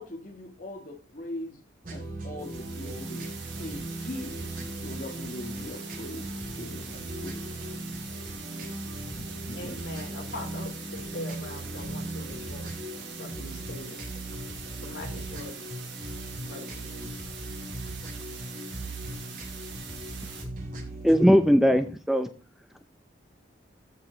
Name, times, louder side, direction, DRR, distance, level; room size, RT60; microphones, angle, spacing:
voice 1, 0.0-1.6 1.9-3.3 3.6-6.3 6.6-7.7 8.3-8.4 8.9-9.8, left 1 dB, 45° left, 1 dB, 1.7 m, -41 dB
sound 1, 1.8-21.3, right 1 dB, 45° right, 2.6 m, -38 dB
sound 2, 2.4-20.4, right 6 dB, 70° right, 3.2 m, -44 dB
voice 2, 9.5-12.8 13.1-14.0 14.8-15.6 16.3-17.2, left 2 dB, 70° left, 1 dB, 3.6 m, -42 dB
voice 3, 21.0-22.3, equal, ahead, 8 dB, 0.6 m, -19 dB
15.0 x 5.4 x 3.9 m, 0.34 s
head